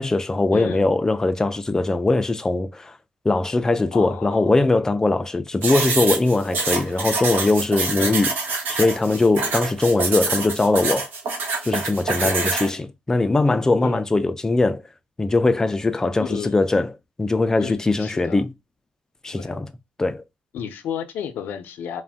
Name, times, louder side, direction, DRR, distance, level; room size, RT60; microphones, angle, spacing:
voice 1, 0.0-2.9 3.2-8.3 8.7-11.1 11.6-14.8 15.2-16.9 17.2-18.5 19.2-19.7 20.0-20.2, left 2 dB, 15° left, 0.3 m, -21 dB
voice 2, 0.5-0.9 3.9-4.5 8.0-8.2 12.2-12.8 13.5-13.6 13.8-14.0 16.2-16.6 17.6-18.4 19.3-19.5 20.5-22.0, left 8 dB, 85° left, 0.5 m, -32 dB
sound 1, 5.6-12.7, right 4 dB, 80° right, 0.9 m, -26 dB
2.5 x 2.1 x 3.4 m
cardioid pair, 120°, 3 cm